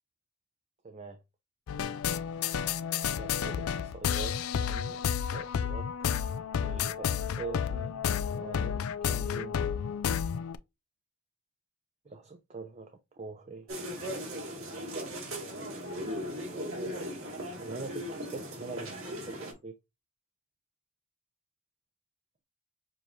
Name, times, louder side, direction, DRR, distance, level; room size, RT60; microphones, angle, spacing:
voice 1, 0.8-1.2 3.2-5.8 6.6-7.1 7.4-9.6 12.1-12.9 13.2-13.8 17.6-19.7, right 3 dB, 30° right, 0.5 m, -43 dB
sound 1, 1.7-10.6, left 8 dB, 75° left, 0.4 m, -31 dB
sound 2, 13.7-19.5, equal, 65° right, 2.2 m, -38 dB
6.7 x 3.0 x 2.7 m
head